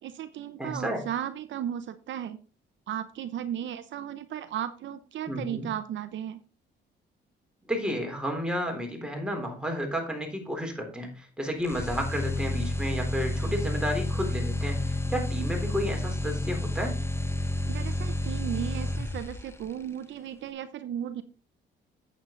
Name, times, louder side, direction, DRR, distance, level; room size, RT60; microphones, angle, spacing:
voice 1, 0.0-2.4 2.9-6.4 17.7-21.2, right 10 dB, 70° right, 11 dB, 0.8 m, -35 dB
voice 2, 0.6-1.1 5.3-5.7 7.7-17.0, equal, 5° right, 1 dB, 3.7 m, -32 dB
sound 1, 11.6-19.6, left 1 dB, 10° left, 1.0 m, -30 dB
8.5 x 7.8 x 3.9 m, 0.35 s
cardioid pair, 90°, 20 cm